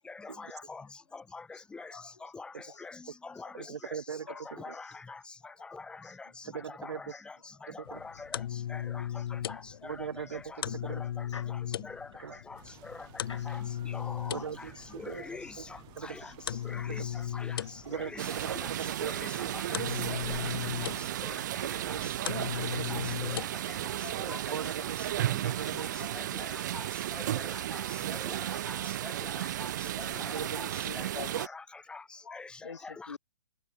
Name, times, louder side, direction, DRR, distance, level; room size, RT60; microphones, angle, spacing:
voice 1, 0.2-0.8 1.1-1.9 2.3-2.5 2.8-3.0 3.2-3.5 3.9-4.0 4.5-5.2 5.6-6.3 6.8-7.3 7.6-8.4 8.7-9.0 9.3-9.6 9.8-10.4 11.0-11.1 11.5-12.1 12.5-12.6 12.8-13.0 13.5-13.6 13.9-14.4 15.0-15.5 16.0-16.3 16.6-17.0 17.3-17.6 17.9-18.7 19.1-19.8 20.1-20.5 20.8-20.9 21.3-21.4 21.7-22.0 22.4-23.0 23.3-23.5 23.8-23.9 24.8-24.9 25.2-25.4 25.8-25.9 26.1-26.9 27.1-27.8 28.1-29.7 30.0-30.7 30.9-31.1 31.3-31.6 31.9-32.0 32.3-32.5 32.8-33.2, left 4 dB, 5° left, 1.2 m, -44 dB
voice 2, 1.9-2.3 2.6-2.8 3.4-3.5 4.3-4.7 5.4-6.1 8.8-8.9 11.3-11.5 13.3-13.4 15.2-15.3 16.8-16.9 23.6-24.5 25.5-26.1 28.5-28.9 29.5-29.6 30.0-30.5 30.8-31.5 32.3-33.2, left 5 dB, 85° left, 3.6 m, -47 dB
voice 3, 3.5-4.8 6.5-7.1 7.7-8.0 9.8-11.0 12.2-12.4 14.3-15.2 15.6-15.7 16.0-16.2 17.0-17.1 17.9-19.9 21.6-22.1 22.6-23.1 24.5-25.1 25.4-25.9 30.3-30.6, right 7 dB, 70° right, 7.1 m, -40 dB
sound 1, 7.8-23.4, left 10 dB, 55° left, 1.3 m, -38 dB
sound 2, 12.6-25.4, right 23 dB, 25° right, 4.2 m, -55 dB
sound 3, 18.2-31.5, right 13 dB, 40° right, 0.4 m, -34 dB
hypercardioid pair, 145°, 15 cm